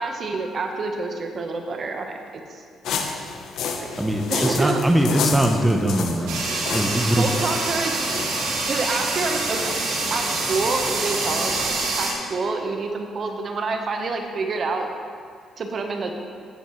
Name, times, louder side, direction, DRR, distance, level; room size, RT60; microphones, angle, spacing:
voice 1, 0.0-2.6 3.8-4.8 7.1-8.0 8.7-9.8 10.1-14.9 15.6-16.1, right 3 dB, 50° right, 4 dB, 1.1 m, -28 dB
sound 1, 2.8-11.6, left 6 dB, 75° left, 1.0 m, -32 dB
voice 2, 4.0-6.4 6.7-7.2, right 1 dB, 10° right, 3 dB, 0.9 m, -21 dB
sound 2, 5.2-11.7, equal, 10° left, 1.9 m, -39 dB
sound 3, 6.3-12.1, right 2 dB, 90° right, 2.1 m, -26 dB
16.0 x 8.0 x 3.2 m, 2.1 s
cardioid pair, 85°, 0 cm